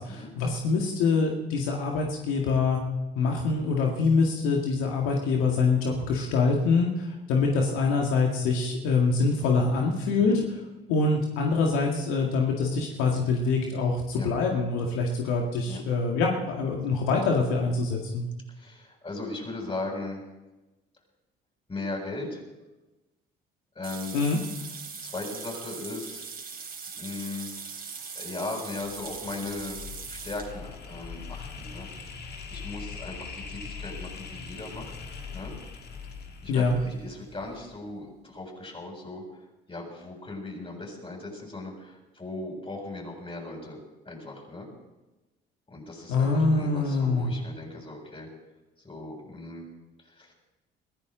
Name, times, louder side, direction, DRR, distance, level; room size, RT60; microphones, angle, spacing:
voice 1, 0.0-2.8 3.2-10.3 10.9-18.3 24.1-24.4 36.5-36.8 46.1-47.3, left 4 dB, 80° left, 0 dB, 2.0 m, -25 dB
voice 2, 18.5-20.2 21.7-22.4 23.8-24.2 25.0-26.2 27.0-27.5 28.1-29.8 30.1-32.1 32.5-34.9 35.3-35.5 36.4-39.2 39.7-43.8 44.1-44.7 45.7-48.3 48.8-49.7 50.1-50.3, left 2 dB, 25° left, 0 dB, 7.3 m, -38 dB
sound 1, 23.8-30.5, right 5 dB, 45° right, 3.4 m, -40 dB
sound 2, 28.8-37.9, left 5 dB, 50° left, 2.4 m, -41 dB
21.5 x 15.0 x 3.9 m, 1.1 s
supercardioid pair, 65°, 21 cm